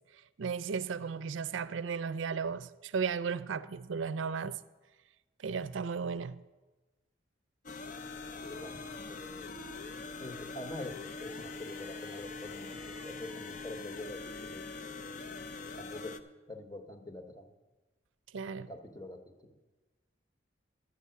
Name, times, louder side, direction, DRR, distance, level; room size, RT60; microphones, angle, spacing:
voice 1, 0.4-4.6 5.4-6.4 18.3-18.7, right 5 dB, 85° right, 0.4 m, -35 dB
sound 1, 7.7-16.2, left 4 dB, 40° left, 0.5 m, -43 dB
voice 2, 8.4-9.5 10.2-14.8 15.7-17.5 18.5-19.5, left 1 dB, 20° left, 0.9 m, -45 dB
11.0 x 8.3 x 5.7 m
head